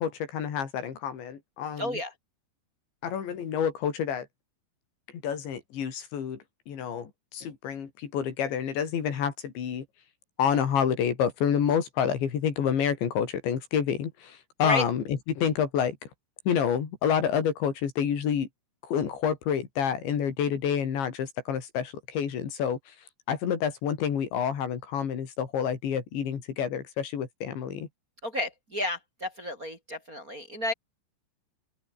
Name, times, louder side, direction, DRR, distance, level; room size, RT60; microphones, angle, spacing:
voice 1, 0.0-2.0 3.0-4.3 5.2-9.9 10.4-16.0 16.5-18.5 18.8-23.0 23.3-27.9, left 8 dB, 70° left, 5.7 m, -28 dB
voice 2, 1.8-2.1 14.6-14.8 28.2-30.7, left 1 dB, 20° right, 3.2 m, -31 dB
open air
omnidirectional pair, 5.4 m